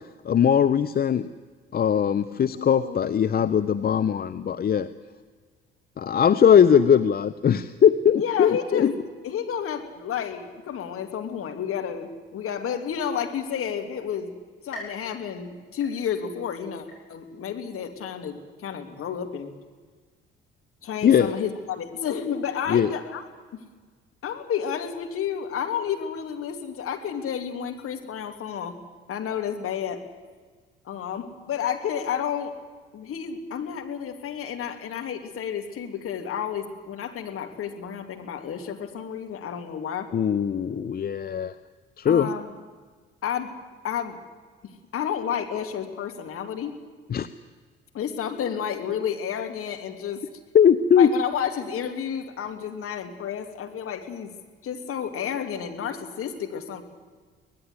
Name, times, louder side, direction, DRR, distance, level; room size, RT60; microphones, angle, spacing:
voice 1, 0.2-1.3 1.7-4.9 6.0-8.9 21.0-21.3 22.7-22.9 40.1-41.5 42.0-42.3 47.1-47.3 50.5-51.1, left 8 dB, 30° left, 12 dB, 0.7 m, -20 dB
voice 2, 2.6-3.3 6.1-6.8 8.2-14.3 14.6-19.5 20.8-23.2 23.5-23.6 24.2-28.8 29.1-30.0 30.8-32.5 32.9-40.1 42.1-42.5 43.2-43.5 43.8-44.2 44.9-46.7 47.9-50.2 51.0-54.3 54.6-56.8, left 8 dB, 45° left, 5 dB, 2.7 m, -31 dB
sound 1, 14.7-16.4 16.9-17.5 18.0-18.1 19.0-19.1, left 1 dB, 80° left, 7.4 m, -44 dB
24.0 x 18.0 x 8.1 m, 1.5 s
figure-of-eight pair, 50°, 30 cm